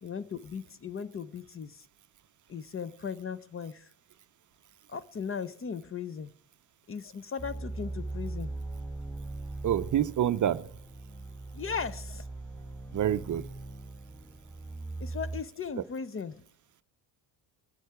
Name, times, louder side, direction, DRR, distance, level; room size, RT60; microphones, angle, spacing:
voice 1, 0.0-1.9 2.5-3.9 4.9-6.3 6.9-8.6 11.5-12.2 15.0-16.4, left 6 dB, 30° left, 0.7 m, -37 dB
sound 1, 7.4-15.4, right 2 dB, 5° left, 2.1 m, -40 dB
voice 2, 9.6-10.7 12.9-13.4, right 10 dB, 40° right, 0.6 m, -27 dB
21.0 x 7.8 x 4.8 m
supercardioid pair, 80°, 47 cm